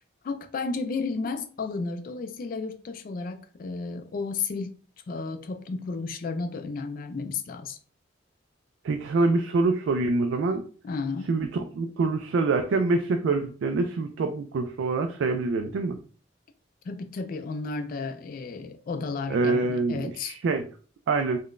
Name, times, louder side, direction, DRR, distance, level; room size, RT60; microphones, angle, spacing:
voice 1, 0.2-4.8 5.1-7.8 10.8-11.3 16.9-20.4, left 4 dB, 45° left, 0.3 m, -33 dB
voice 2, 8.8-10.6 11.3-16.0 19.3-20.6 21.1-21.4, right 3 dB, 75° right, 0.3 m, -25 dB
3.7 x 2.1 x 2.4 m
head